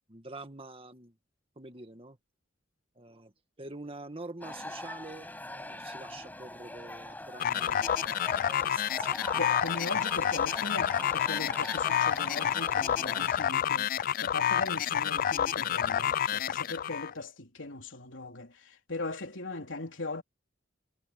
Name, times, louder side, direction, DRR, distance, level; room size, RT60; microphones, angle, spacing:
voice 1, 0.1-1.1 1.6-2.2 3.0-3.3 3.6-8.1 8.5-9.3, right 2 dB, 30° right, 1.9 m, -46 dB
sound 1, 4.4-13.5, left 1 dB, 10° left, 5.6 m, -42 dB
sound 2, 7.4-17.1, left 9 dB, 45° left, 0.3 m, -29 dB
voice 2, 9.3-20.2, left 2 dB, 75° left, 3.7 m, -39 dB
head